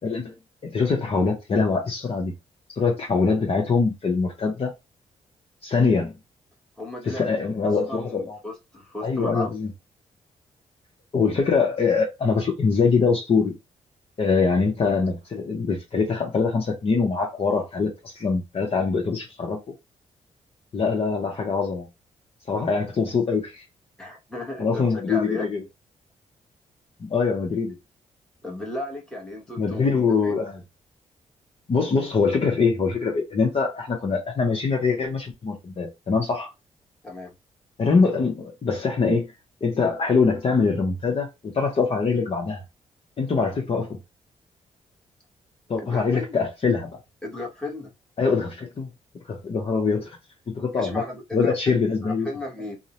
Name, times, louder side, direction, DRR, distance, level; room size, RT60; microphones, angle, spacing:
voice 1, 0.0-0.3 0.6-2.3 2.8-4.7 5.6-6.1 7.0-8.4 9.0-9.7 11.1-13.5 14.2-19.6 20.7-21.9 22.5-23.6 24.6-25.6 27.0-27.8 29.6-30.6 31.7-36.5 37.8-39.3 39.6-41.3 41.5-42.6 43.2-44.0 45.7-46.9 48.2-48.9 49.3-50.2 50.5-51.0 51.3-52.3, left 4 dB, 45° left, 0.7 m, -23 dB
voice 2, 6.8-7.4 7.9-9.5 24.0-25.5 28.4-29.9 30.2-30.3 37.0-37.3 45.8-46.4 47.2-47.9 50.7-52.8, left 2 dB, 5° left, 1.1 m, -35 dB
2.5 x 2.0 x 2.9 m
cardioid pair, 70°, 13 cm